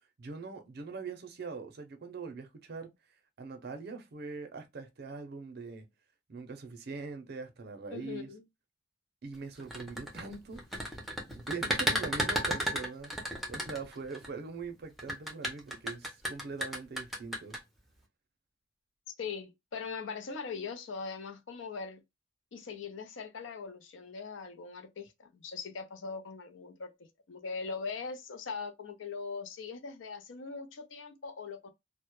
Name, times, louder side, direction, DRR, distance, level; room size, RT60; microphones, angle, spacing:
voice 1, 0.2-2.9 3.4-5.9 6.3-8.3 9.2-11.0 11.3-17.6, right 4 dB, 55° right, 0.5 m, -42 dB
voice 2, 7.9-8.4 19.2-22.0 22.5-26.9 27.3-31.7, left 5 dB, 75° left, 0.5 m, -41 dB
sound 1, 9.6-14.3 15.0-17.6, equal, ahead, 0.5 m, -33 dB
2.1 x 2.0 x 2.9 m
head